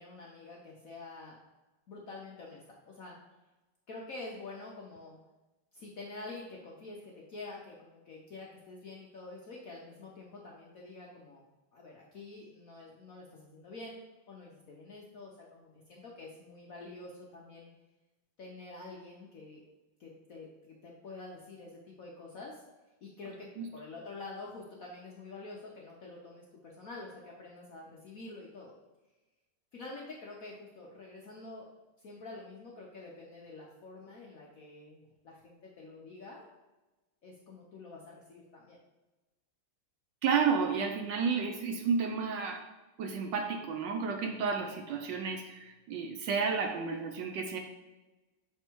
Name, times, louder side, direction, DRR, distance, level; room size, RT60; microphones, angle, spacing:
voice 1, 0.0-1.4 1.9-3.2 3.9-5.2 5.7-11.4 11.7-14.0 14.3-17.7 18.4-19.6 20.0-22.6 23.0-28.7 29.7-31.7 32.0-36.5 37.2-38.8 46.3-46.6, left 3 dB, 60° left, -3 dB, 0.9 m, -47 dB
voice 2, 40.2-42.6 43.0-47.6, right 5 dB, 70° right, 4 dB, 1.1 m, -31 dB
6.5 x 3.5 x 4.5 m, 1.1 s
omnidirectional pair, 2.3 m